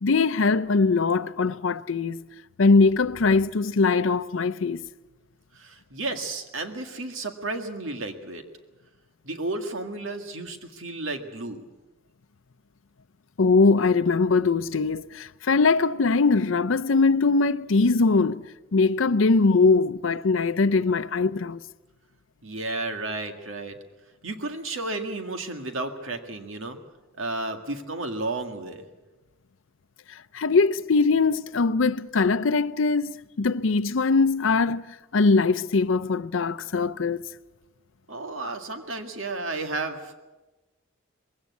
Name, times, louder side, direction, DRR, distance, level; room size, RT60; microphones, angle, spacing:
voice 1, 0.0-2.3 2.6-4.8 13.4-18.5 18.7-21.6 30.3-37.2, left 4 dB, 75° left, 0.6 m, -21 dB
voice 2, 5.5-8.4 9.2-11.6 22.4-23.8 24.2-26.8 27.2-28.9 38.1-40.2, right 2 dB, 80° right, 1.9 m, -32 dB
21.0 x 17.0 x 8.3 m
head